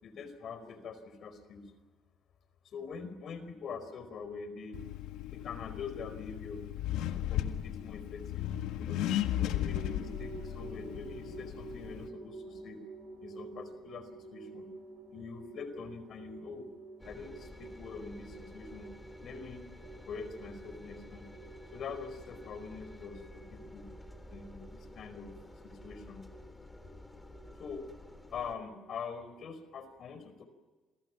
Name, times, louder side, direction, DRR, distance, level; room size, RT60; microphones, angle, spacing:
voice 1, 0.0-1.7 2.6-4.8 5.3-6.6 7.3-9.0 9.4-12.8 13.2-14.7 15.1-16.7 17.0-18.9 19.2-19.7 20.1-21.3 21.7-23.9 24.3-25.3 25.6-26.2 27.6-27.9 28.3-30.5, left 5 dB, 55° left, 11 dB, 4.8 m, -44 dB
Accelerating revving vroom, 4.7-12.1, left 12 dB, 85° left, 1.7 m, -36 dB
sound 1, 9.6-29.4, right 4 dB, 80° right, 7.0 m, -50 dB
Engine, 17.0-28.5, left 1 dB, 10° left, 3.3 m, -51 dB
28.5 x 23.5 x 6.0 m, 1.3 s
cardioid pair, 90°, 0 cm